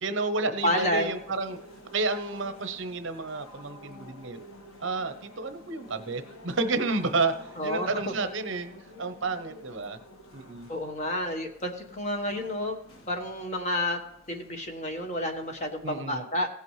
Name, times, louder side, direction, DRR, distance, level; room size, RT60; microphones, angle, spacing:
voice 1, 0.0-1.6 1.9-4.5 4.8-8.7 9.0-10.0 10.3-10.7 15.8-16.2, right 3 dB, 60° right, 9 dB, 0.8 m, -31 dB
sound 1, 0.6-16.0, equal, 80° left, 1.5 m, -51 dB
voice 2, 0.6-1.1 7.6-8.1 10.7-12.8 13.1-14.0 14.3-16.5, left 1 dB, 30° left, 4 dB, 1.3 m, -30 dB
16.5 x 8.3 x 3.2 m, 0.82 s
head